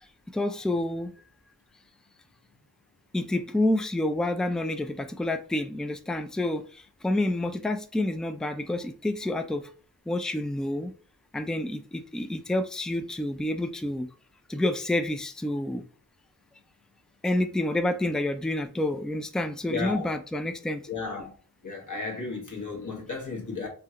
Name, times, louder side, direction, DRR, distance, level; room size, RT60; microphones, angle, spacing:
voice 1, 0.3-1.1 3.1-9.7 10.1-10.9 11.3-14.1 14.5-15.8 17.2-20.9, left 1 dB, ahead, 0.4 m, -28 dB
voice 2, 19.7-20.1 20.9-21.3 21.6-23.7, left 4 dB, 55° left, 1.3 m, -34 dB
4.8 x 2.4 x 2.9 m
wide cardioid pair, 55°, 37 cm